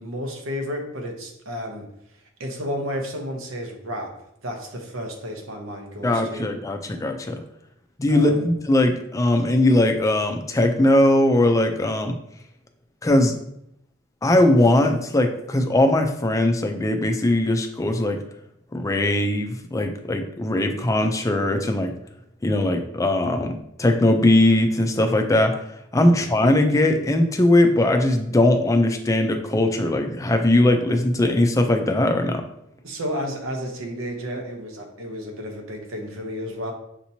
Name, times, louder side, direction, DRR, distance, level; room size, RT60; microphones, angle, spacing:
voice 1, 0.0-1.8 2.4-4.1 4.4-6.5 8.1-8.5 26.0-26.3 32.8-36.7, equal, 75° right, 2 dB, 0.9 m, -32 dB
voice 2, 6.0-7.4 8.0-12.1 13.0-13.4 14.2-18.2 18.7-21.9 22.4-25.6 25.9-32.4, left 1 dB, 15° left, 5 dB, 0.4 m, -20 dB
6.7 x 2.9 x 2.7 m, 0.77 s
head